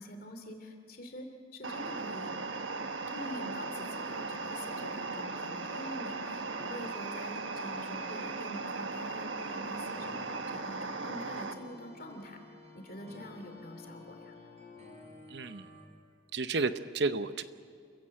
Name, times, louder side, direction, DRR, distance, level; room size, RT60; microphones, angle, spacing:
voice 1, 0.0-2.3 3.1-12.4 12.7-14.3, left 1 dB, 50° left, 5 dB, 2.9 m, -46 dB
sound 1, 1.6-11.5, right 3 dB, 90° right, 1.4 m, -37 dB
sound 2, 9.7-15.8, left 2 dB, 35° right, 4.9 m, -52 dB
voice 2, 15.3-15.7 16.3-17.4, right 3 dB, 60° right, 11 dB, 0.9 m, -32 dB
28.0 x 16.0 x 7.8 m, 2.3 s
head